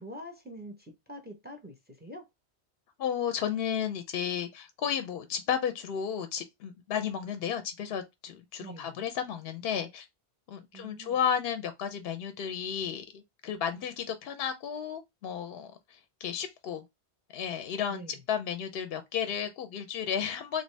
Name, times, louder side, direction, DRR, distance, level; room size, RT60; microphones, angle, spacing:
voice 1, 0.0-2.3 8.6-9.0 10.7-11.2 17.9-18.2, right 1 dB, 10° right, 0.6 m, -45 dB
voice 2, 3.0-10.1 10.5-16.8 17.3-20.6, left 8 dB, 70° left, 0.7 m, -33 dB
3.3 x 2.6 x 3.2 m
omnidirectional pair, 1.1 m